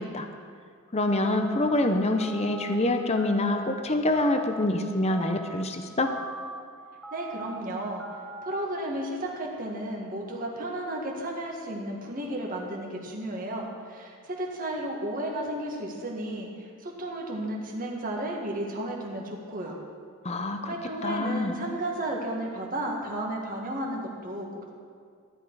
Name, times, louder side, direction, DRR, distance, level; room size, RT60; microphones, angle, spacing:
voice 1, 0.9-6.1 20.2-20.7 21.0-21.6, left 1 dB, 30° left, 6 dB, 0.7 m, -26 dB
sound 1, 1.2-1.8 2.2-2.7 3.2-3.7 4.1-4.7 5.1-5.6 6.1-6.6 7.0-7.6 8.0-8.5, equal, ahead, 1.0 m, -40 dB
voice 2, 7.1-8.0 8.4-19.8 20.7-24.7, right 1 dB, 40° right, -1 dB, 1.8 m, -33 dB
13.5 x 11.0 x 4.8 m, 2.1 s
head